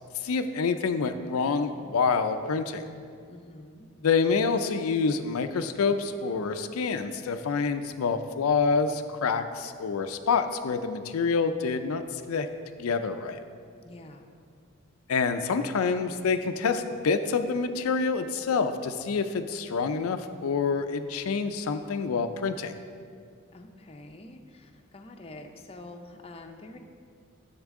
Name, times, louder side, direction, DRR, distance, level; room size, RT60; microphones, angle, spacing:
voice 1, 0.2-2.8 4.0-12.5 12.8-13.4 15.1-22.7, left 5 dB, 80° left, 8 dB, 0.4 m, -27 dB
voice 2, 3.3-3.9 13.8-14.3 23.5-26.8, left 2 dB, 25° left, 4 dB, 0.6 m, -46 dB
10.5 x 7.3 x 3.6 m, 2.3 s
head